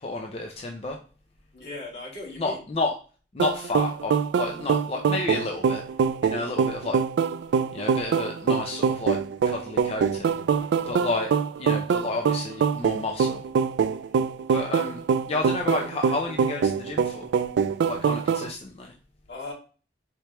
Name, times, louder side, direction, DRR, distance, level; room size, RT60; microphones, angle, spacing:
voice 1, 0.0-1.0 2.4-2.9 3.3-5.8 6.2-7.0 7.7-10.3 10.9-11.3 11.6-13.4 14.5-15.0 15.3-17.3 17.8-18.9, left 2 dB, 35° left, 2 dB, 0.5 m, -31 dB
voice 2, 1.5-2.6 10.6-10.9 19.3-19.5, left 2 dB, 75° left, -5 dB, 2.2 m, -38 dB
sound 1, 3.4-18.5, right 6 dB, 85° right, 0.3 m, -24 dB
4.4 x 3.3 x 2.9 m, 0.37 s
head